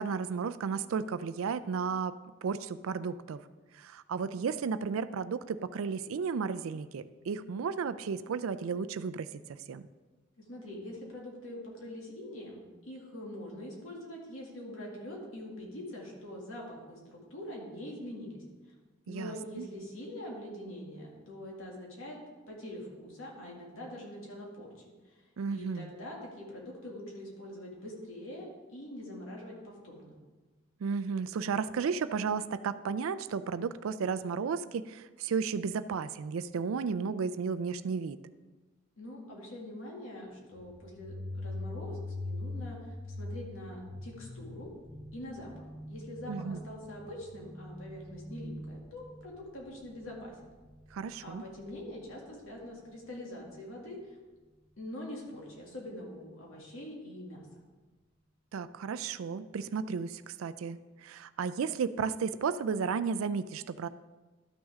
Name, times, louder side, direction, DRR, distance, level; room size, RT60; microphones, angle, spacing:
voice 1, 0.0-3.4 3.7-9.8 19.1-19.7 25.4-25.9 30.8-38.2 46.3-46.6 50.9-51.4 58.5-63.9, right 5 dB, 90° right, 13 dB, 0.4 m, -33 dB
voice 2, 10.5-18.4 19.1-22.2 22.5-24.7 25.0-30.2 39.0-44.7 45.1-50.3 51.2-54.2 54.8-57.4, left 1 dB, 85° left, -2 dB, 2.3 m, -44 dB
sound 1, 40.5-52.0, left 1 dB, 10° left, 0.9 m, -43 dB
12.5 x 6.3 x 3.6 m, 1.2 s
head